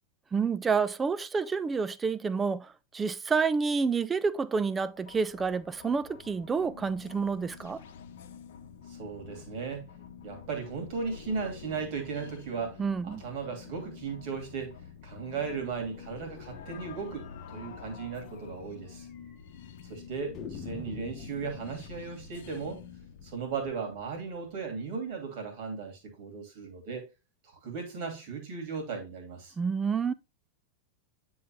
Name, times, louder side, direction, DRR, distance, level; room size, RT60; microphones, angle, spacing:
voice 1, 0.3-2.7 2.9-7.8 12.8-13.2 29.6-30.1, right 5 dB, 15° right, 0.5 m, -29 dB
sound 1, 4.9-23.7, left 7 dB, 55° left, 0.9 m, -48 dB
voice 2, 8.9-9.9 10.2-14.7 15.0-19.1 19.9-22.8 23.2-27.1 27.4-29.6, right 5 dB, 45° right, 2.7 m, -36 dB
sound 2, 17.5-17.7 18.0-18.1 18.4-18.5 19.1-19.6 20.3-25.1, left 5 dB, 30° left, 1.2 m, -47 dB
9.4 x 3.9 x 3.0 m
figure-of-eight pair, 90°, 0 cm